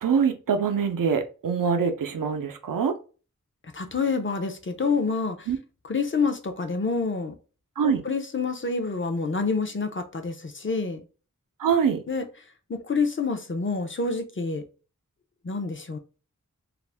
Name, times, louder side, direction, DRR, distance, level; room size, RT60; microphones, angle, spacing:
voice 1, 0.0-2.9 5.5-5.6 7.8-8.0 11.6-12.0, right 6 dB, 85° right, 0.5 m, -24 dB
voice 2, 3.7-5.5 5.8-7.3 7.8-11.0 12.1-12.2 12.7-14.6 15.4-16.0, left 4 dB, 40° left, 0.5 m, -27 dB
2.4 x 2.1 x 3.3 m
wide cardioid pair, 40°, 32 cm